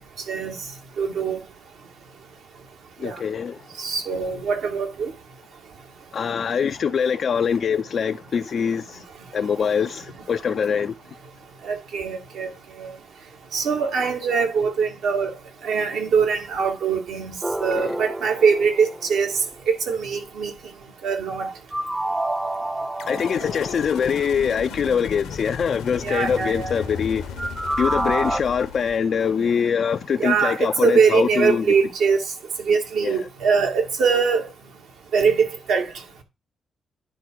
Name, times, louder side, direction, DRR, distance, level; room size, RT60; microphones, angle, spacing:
voice 1, 1.0-1.4 3.0-3.2 3.8-5.1 11.6-12.5 12.8-12.9 13.5-15.3 15.6-19.3 19.7-20.5 21.0-21.5 26.0-26.9 30.2-32.2 32.7-34.4 35.1-35.9, right 5 dB, 75° right, 1.9 m, -22 dB
voice 2, 3.0-3.6 6.1-9.0 9.3-10.9 17.8-18.0 23.1-27.3 27.8-31.7 33.0-33.2, left 7 dB, 60° left, 0.3 m, -23 dB
sound 1, 17.4-19.5 21.7-24.4 27.4-28.4, right 1 dB, 20° right, 0.6 m, -28 dB
sound 2, 23.0-29.5, left 7 dB, 80° left, 0.8 m, -36 dB
10.0 x 3.7 x 4.6 m
hypercardioid pair, 40°, 0 cm